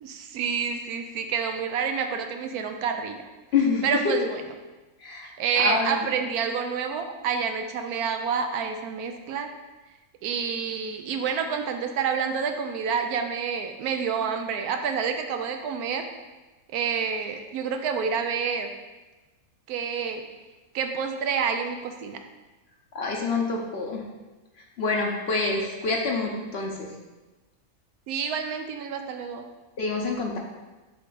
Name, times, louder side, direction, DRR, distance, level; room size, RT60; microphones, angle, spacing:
voice 1, 0.0-3.2 3.8-4.4 5.2-9.5 10.2-16.0 16.7-18.7 19.7-20.2 20.7-22.2 28.1-29.4, right 6 dB, 85° right, 6 dB, 1.1 m, -28 dB
voice 2, 3.5-4.1 5.0-5.3 5.6-5.9 22.9-24.0 24.8-26.9 29.8-30.4, left 4 dB, 55° left, 0 dB, 0.8 m, -26 dB
7.6 x 3.6 x 3.8 m, 1.2 s
omnidirectional pair, 1.6 m